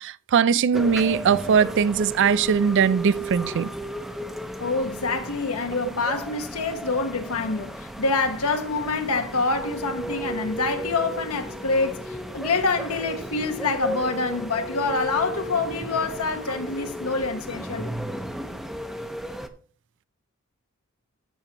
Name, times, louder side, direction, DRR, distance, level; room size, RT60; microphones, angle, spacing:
voice 1, 0.0-3.7, right 6 dB, 55° right, 0.4 m, -20 dB
sound 1, 0.7-19.5, right 1 dB, ahead, 0.7 m, -34 dB
voice 2, 4.6-17.9, left 3 dB, 85° left, 1.2 m, -26 dB
14.5 x 5.9 x 2.9 m
head